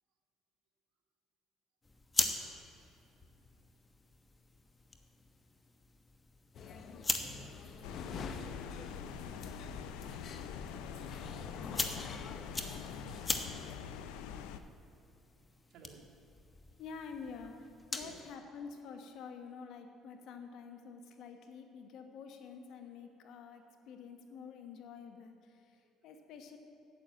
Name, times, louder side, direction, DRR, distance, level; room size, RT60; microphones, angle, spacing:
sound 1, 1.8-18.2, left 2 dB, 20° left, 1.0 m, -42 dB
sound 2, 6.5-13.8, left 5 dB, 50° left, 0.8 m, -47 dB
sound 3, 7.8-14.6, left 7 dB, 90° left, 0.5 m, -45 dB
voice 1, 15.7-16.1 18.0-18.2 25.8-25.9, right 4 dB, 65° right, 0 dB, 1.8 m, -60 dB
voice 2, 16.8-26.6, left 5 dB, 70° left, 5 dB, 1.3 m, -48 dB
9.1 x 8.8 x 7.6 m, 2.9 s
cardioid pair, 100°, 0 cm